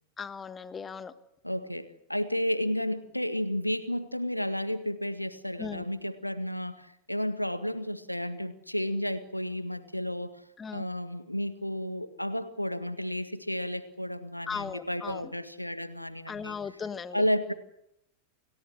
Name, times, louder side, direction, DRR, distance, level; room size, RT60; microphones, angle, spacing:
voice 1, 0.2-1.1 5.6-5.8 10.6-10.9 14.5-15.3 16.3-17.3, left 6 dB, 20° left, 14 dB, 1.4 m, -37 dB
voice 2, 1.4-10.4 10.7-16.6 17.1-17.5, equal, 90° left, 11 dB, 1.7 m, -32 dB
29.5 x 17.5 x 6.5 m, 0.80 s
figure-of-eight pair, 90°, 0 cm